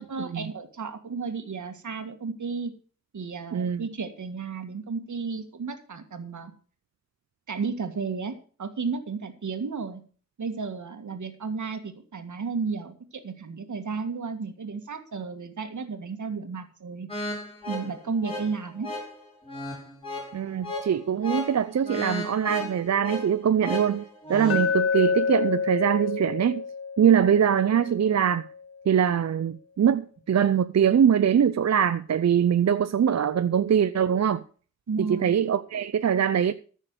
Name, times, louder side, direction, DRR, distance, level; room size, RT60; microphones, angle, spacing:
voice 1, 0.0-2.7 3.1-6.5 7.5-10.0 10.4-17.1 17.7-18.9 34.9-35.4, right 5 dB, 90° right, 1.8 m, -33 dB
voice 2, 3.5-3.8 20.3-26.6 27.0-28.4 28.9-34.4 35.1-36.5, right 8 dB, 65° right, 0.5 m, -23 dB
sound 1, 17.1-24.7, left 1 dB, 20° left, 6.1 m, -35 dB
Glass, 24.5-28.6, left 5 dB, 55° left, 0.5 m, -29 dB
14.0 x 6.5 x 6.6 m
wide cardioid pair, 110°, 29 cm